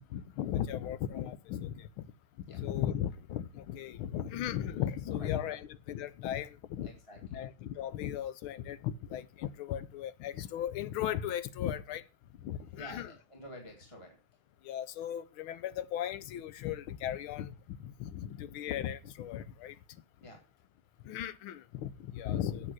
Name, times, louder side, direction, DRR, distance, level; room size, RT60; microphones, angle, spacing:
voice 1, 0.1-1.9 2.5-6.9 7.3-12.0 12.4-13.1 14.6-17.5 17.8-19.8 21.0-22.7, left 11 dB, 90° left, 1.6 m, -36 dB
voice 2, 5.1-5.6 6.8-7.4 12.7-14.2 20.2-20.4, equal, 15° left, 2.3 m, -50 dB
8.7 x 7.6 x 6.2 m
omnidirectional pair, 2.3 m